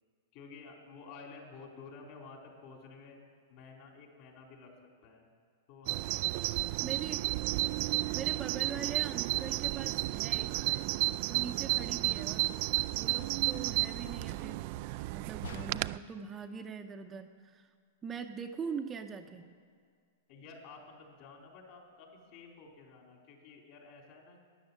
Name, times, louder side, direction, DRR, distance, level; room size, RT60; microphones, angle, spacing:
voice 1, 0.3-3.2 3.5-4.7 5.0-5.3 5.7-6.6 15.5-16.1 19.3-19.4 20.3-24.4, left 4 dB, 50° left, 0 dB, 3.9 m, -52 dB
Bird vocalization bird call bird song, 5.9-16.0, right 20 dB, 50° right, 0.3 m, -32 dB
voice 2, 6.8-7.3 8.0-11.0 11.3-12.5 12.9-17.7 18.0-19.5, right 6 dB, 20° right, 4 dB, 0.7 m, -42 dB
sound 1, 15.4-16.2, left 3 dB, 90° left, 1.3 m, -46 dB
13.0 x 10.5 x 8.7 m, 2.1 s
hypercardioid pair, 140°, 0 cm